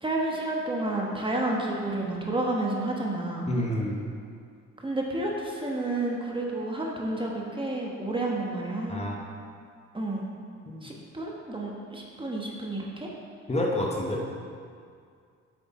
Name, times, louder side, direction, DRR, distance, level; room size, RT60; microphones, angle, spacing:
voice 1, 0.0-3.5 4.8-9.1 9.9-10.3 10.8-13.1, right 2 dB, 15° right, -2 dB, 1.3 m, -30 dB
voice 2, 3.5-4.0 8.9-9.2 10.7-10.9 13.5-14.2, left 1 dB, 20° left, -2 dB, 1.2 m, -28 dB
8.2 x 6.8 x 4.3 m, 2.2 s
cardioid pair, 90°, 30 cm